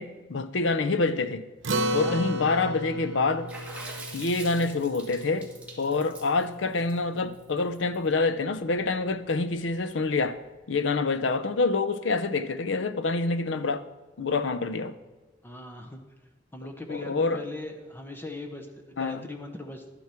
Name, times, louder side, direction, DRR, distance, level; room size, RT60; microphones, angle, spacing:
voice 1, 0.0-1.4 1.9-3.5 4.1-5.5 5.8-10.4 10.7-13.8 14.2-14.9 16.9-17.4 19.0-19.3, left 3 dB, 80° left, 0.6 m, -27 dB
Acoustic guitar, 1.6-6.3, equal, 85° right, 0.8 m, -33 dB
Water / Splash splatter, 3.5-8.0, right 2 dB, 5° right, 1.8 m, -43 dB
voice 2, 15.4-16.0 16.5-19.9, left 2 dB, 10° left, 0.8 m, -39 dB
11.5 x 9.4 x 4.4 m
head